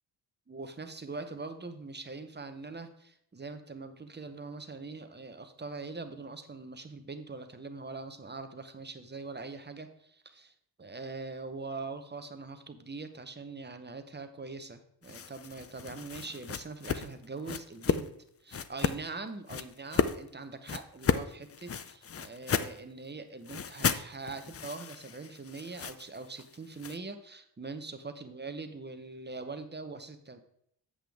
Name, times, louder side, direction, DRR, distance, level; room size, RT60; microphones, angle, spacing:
voice 1, 0.5-10.5 10.8-18.1 18.4-30.4, right 3 dB, 20° right, 8 dB, 0.8 m, -42 dB
sound 1, 15.0-18.1 18.5-19.0 19.5-20.2 20.7-22.8 23.5-27.0, left 7 dB, 35° left, 0.4 m, -33 dB
8.2 x 7.7 x 3.5 m, 0.71 s
wide cardioid pair, 105°, 47 cm